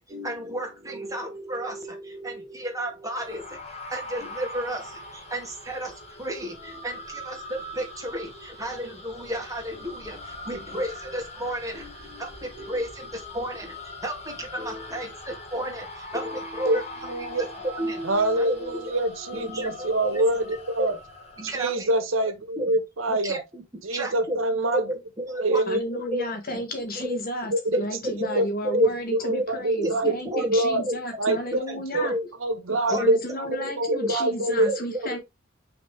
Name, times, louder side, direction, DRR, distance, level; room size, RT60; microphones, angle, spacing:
voice 1, 0.0-19.0 19.3-20.2 20.8-20.9 21.4-21.9 22.6-22.7 23.1-23.6 23.9-24.4 24.7-25.6 25.9-26.6 27.0-27.2 27.7-28.9 29.3-29.5 29.8-30.5 30.8-31.0 31.3-32.3 32.7-33.2 33.5-34.1 34.4-35.0, right 1 dB, 15° right, 2.6 m, -33 dB
sound 1, 3.2-21.7, left 1 dB, 35° left, 2.2 m, -41 dB
voice 2, 16.6-17.4 18.0-21.0 21.4-23.4 23.8-24.9 25.4-25.8 27.5-27.8 28.2-28.4 28.8-30.8 31.2-31.6 31.9-32.1 32.4-33.5 33.8-34.7, right 1 dB, 90° right, 1.5 m, -25 dB
voice 3, 25.6-32.1 32.9-35.2, equal, 50° left, 2.4 m, -32 dB
6.3 x 4.9 x 3.6 m
head